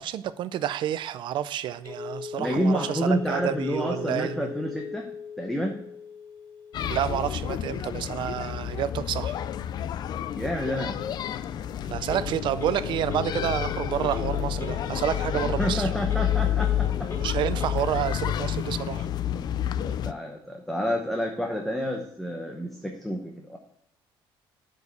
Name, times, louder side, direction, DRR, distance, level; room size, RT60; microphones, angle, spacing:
voice 1, 0.0-4.5 6.9-9.4 11.9-15.9 17.2-19.1, right 11 dB, 55° right, 14 dB, 0.5 m, -29 dB
Telephone, 1.8-17.9, left 5 dB, 30° left, 1.8 m, -41 dB
voice 2, 2.4-5.1 5.4-5.8 10.4-11.0 15.3-17.1 19.4-19.5 19.8-23.6, equal, ahead, 1 dB, 0.8 m, -29 dB
sound 1, 6.7-20.1, left 10 dB, 45° left, 0.4 m, -29 dB
6.4 x 5.0 x 6.6 m, 0.71 s
cardioid pair, 140°, 10 cm